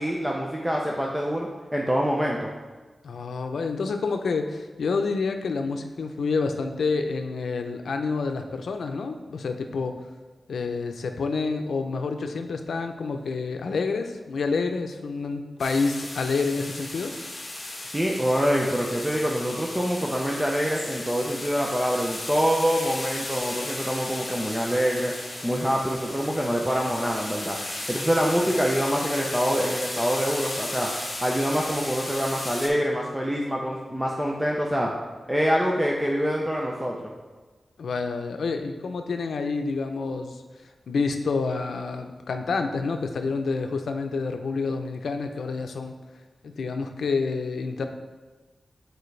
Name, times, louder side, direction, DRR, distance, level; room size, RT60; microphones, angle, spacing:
voice 1, 0.0-2.5 17.9-25.1 25.4-30.9 31.2-34.9 35.3-37.0, equal, 5° right, -1 dB, 0.5 m, -25 dB
voice 2, 3.0-9.9 10.5-17.1 37.8-40.4 40.9-45.9 46.4-47.9, left 4 dB, 90° left, 5 dB, 0.6 m, -28 dB
sound 1, 15.6-32.7, left 1 dB, 25° left, 1.8 m, -35 dB
9.2 x 4.5 x 3.3 m, 1.3 s
wide cardioid pair, 150°, 0 cm